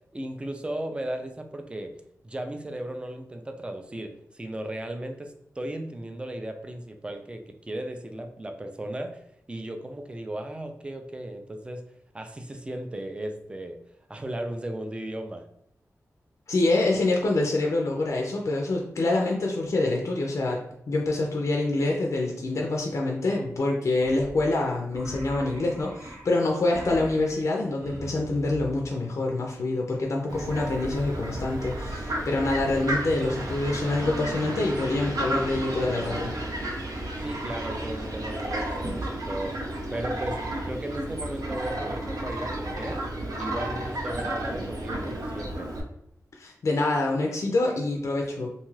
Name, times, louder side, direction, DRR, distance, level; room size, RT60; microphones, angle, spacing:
voice 1, 0.1-1.9 2.2-9.2 9.5-11.8 12.1-13.8 14.1-15.4 37.2-39.6 39.9-43.0 43.4-45.7, right 1 dB, 20° right, 5 dB, 0.3 m, -35 dB
voice 2, 16.5-36.3 46.4-48.5, left 2 dB, 55° left, 0 dB, 0.4 m, -26 dB
sound 1, 24.0-29.1 30.3-33.0 36.5-36.7 37.0-37.4 38.3-42.0, right 1 dB, 50° right, 0.8 m, -43 dB
Fowl, 30.3-45.8, right 1 dB, 80° right, 0.6 m, -32 dB
2.6 x 2.3 x 3.1 m, 0.76 s
wide cardioid pair, 100°, 6 cm